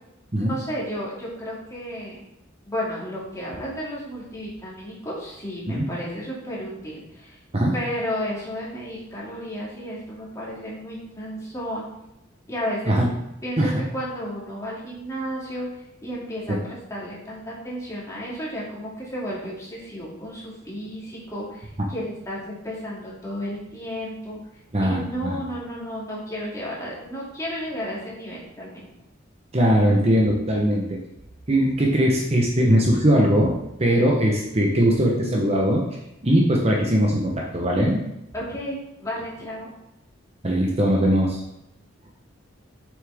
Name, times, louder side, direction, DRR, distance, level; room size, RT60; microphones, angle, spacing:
voice 1, 0.4-2.2 2.7-7.4 7.7-11.9 12.5-13.0 13.4-15.7 16.0-16.6 16.9-24.4 24.8-28.9 38.3-39.7, equal, 15° left, -6 dB, 2.6 m, -33 dB
voice 2, 24.7-25.4 29.5-31.0 31.5-35.8 36.2-38.0 40.4-41.4, equal, 30° right, -1 dB, 0.9 m, -20 dB
7.4 x 6.3 x 3.5 m, 0.87 s
head